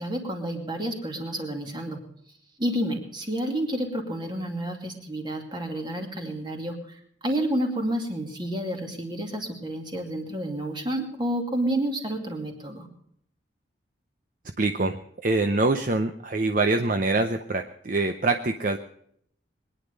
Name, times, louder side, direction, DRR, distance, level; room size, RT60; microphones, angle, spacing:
voice 1, 0.0-2.1 2.6-12.9, right 1 dB, 25° right, 3 dB, 2.5 m, -30 dB
voice 2, 14.6-18.8, right 2 dB, 45° right, 7 dB, 0.7 m, -25 dB
22.0 x 10.0 x 5.3 m, 0.68 s
head